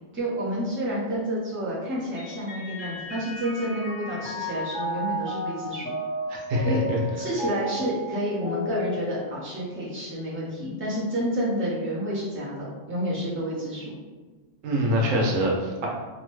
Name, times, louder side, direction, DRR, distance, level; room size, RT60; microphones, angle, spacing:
voice 1, 0.1-5.9 6.6-6.8 7.2-13.9, equal, 10° right, -9 dB, 0.7 m, -29 dB
Mallet percussion, 2.2-9.9, equal, 55° left, 0.6 m, -34 dB
voice 2, 6.3-7.0 14.6-15.9, equal, 85° right, -2 dB, 1.0 m, -24 dB
2.9 x 2.1 x 3.0 m, 1.3 s
omnidirectional pair, 1.3 m